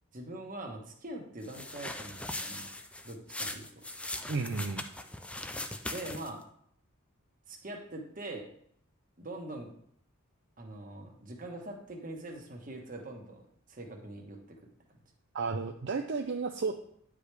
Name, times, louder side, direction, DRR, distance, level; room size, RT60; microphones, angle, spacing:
voice 1, 0.1-2.7 3.0-3.8 5.9-6.4 7.5-8.5 9.2-9.7 10.6-13.4 13.7-14.6, right 1 dB, 40° right, 2 dB, 1.2 m, -43 dB
sound 1, 1.4-6.4, left 2 dB, 5° left, 0.3 m, -40 dB
voice 2, 4.3-4.8 15.3-16.7, right 4 dB, 60° right, 4 dB, 0.5 m, -32 dB
9.5 x 5.0 x 3.3 m, 0.66 s
head